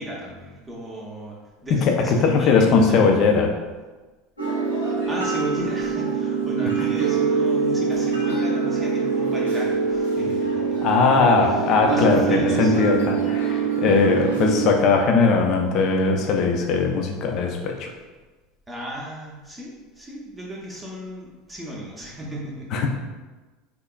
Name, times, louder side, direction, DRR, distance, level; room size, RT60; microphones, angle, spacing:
voice 1, 0.0-3.4 5.1-10.4 10.7-10.8 11.4-13.7 18.7-22.7, equal, 15° right, -4 dB, 0.6 m, -34 dB
voice 2, 1.8-3.5 10.8-17.9 22.7-22.9, left 4 dB, 45° left, 3 dB, 0.4 m, -19 dB
sound 1, 4.4-14.7, right 5 dB, 85° left, 0.9 m, -24 dB
3.5 x 2.4 x 2.2 m, 1.2 s
figure-of-eight pair, 75°, 0 cm